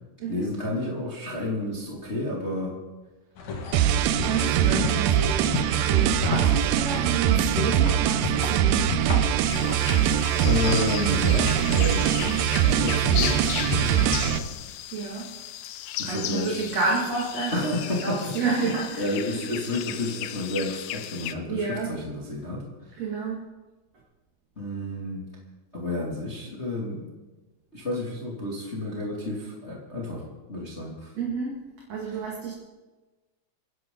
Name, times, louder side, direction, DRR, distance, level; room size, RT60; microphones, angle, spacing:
voice 1, 0.3-2.8 4.6-4.9 10.4-14.5 16.0-16.6 17.5-23.0 24.6-25.3 25.7-27.1 27.7-31.1, left 1 dB, 20° left, -4 dB, 2.2 m, -31 dB
sound 1, 3.4-14.5, left 4 dB, 50° left, 2.4 m, -35 dB
sound 2, 3.7-14.4, right 10 dB, 85° right, 2.0 m, -23 dB
voice 2, 4.2-9.1 14.9-15.3 16.0-17.6 18.0-19.1 21.5-21.9 23.0-23.4 31.1-31.6 31.9-32.5, right 4 dB, 45° right, -3 dB, 2.9 m, -30 dB
sound 3, 9.5-21.3, left 12 dB, 80° left, 2.4 m, -35 dB
28.0 x 11.0 x 3.9 m, 1.2 s
omnidirectional pair, 4.8 m